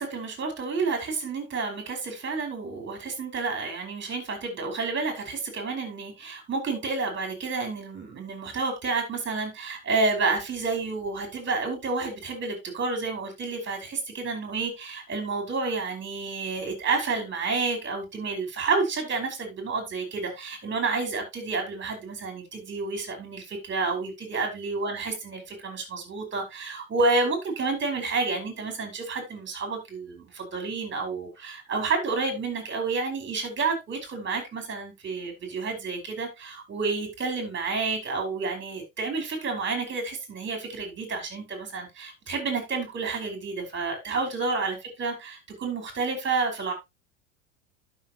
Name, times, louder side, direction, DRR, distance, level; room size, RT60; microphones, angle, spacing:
voice 1, 0.0-46.7, right 4 dB, 30° right, 4 dB, 5.1 m, -30 dB
12.0 x 6.6 x 3.0 m, 0.22 s
hypercardioid pair, 95°, 40 cm